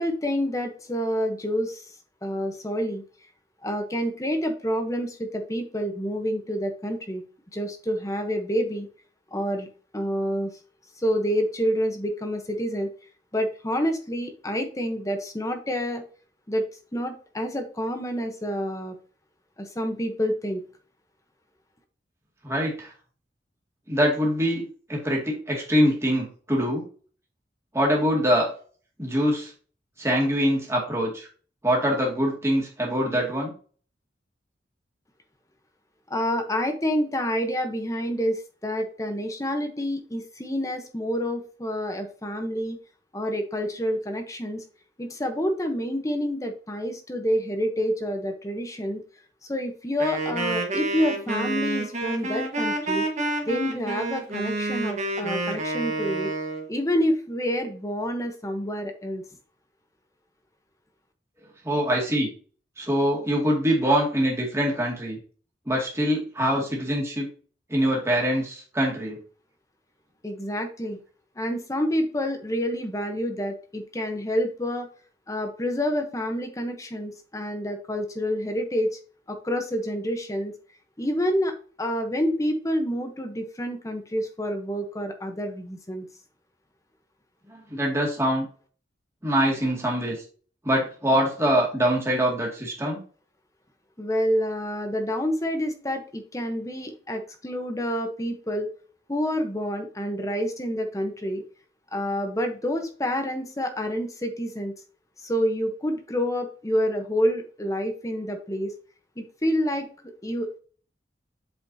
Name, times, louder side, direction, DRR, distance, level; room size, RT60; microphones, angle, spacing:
voice 1, 0.0-1.8 2.2-3.0 3.6-7.2 7.5-8.9 9.3-9.7 9.9-10.5 11.0-12.9 13.3-16.0 16.5-16.6 16.9-18.9 19.6-20.6 36.1-42.8 43.1-44.6 45.0-49.0 49.5-53.1 53.5-56.3 56.7-59.2 70.2-71.0 71.4-74.9 75.3-79.0 79.3-80.5 81.0-86.1 94.0-98.7 99.1-101.4 101.9-104.7 105.2-108.7 109.2-109.9 110.2-110.6, equal, 20° left, 5 dB, 1.0 m, -28 dB
voice 2, 22.4-22.9 23.9-26.9 27.7-28.5 29.0-29.5 30.0-31.3 31.6-33.5 61.6-62.3 62.8-65.2 65.7-67.3 67.7-69.2 87.5-88.5 89.2-90.2 90.6-93.0, equal, 15° right, -2 dB, 2.3 m, -24 dB
Wind instrument woodwind instrument, 50.0-56.7, right 2 dB, 40° right, 1.5 m, -29 dB
8.0 x 5.1 x 2.8 m, 0.40 s
head